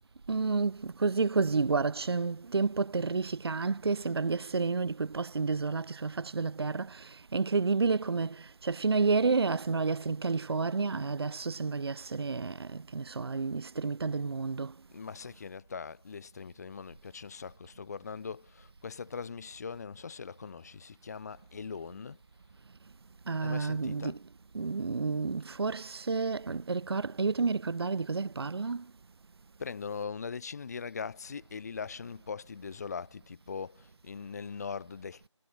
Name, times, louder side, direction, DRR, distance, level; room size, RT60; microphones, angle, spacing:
voice 1, 0.3-14.7 23.3-24.2 24.5-28.9, right 4 dB, 55° right, 0.7 m, -30 dB
voice 2, 14.9-22.2 23.4-24.2 29.6-35.3, left 5 dB, 35° left, 3.2 m, -41 dB
figure-of-eight pair, 170°, 16 cm